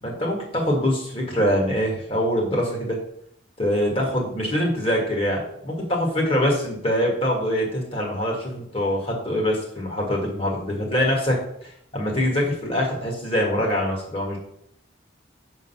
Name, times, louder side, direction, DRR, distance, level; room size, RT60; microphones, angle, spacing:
voice 1, 0.0-3.0 3.6-14.4, equal, 30° left, -2 dB, 1.8 m, -24 dB
6.5 x 3.9 x 5.6 m, 0.72 s
head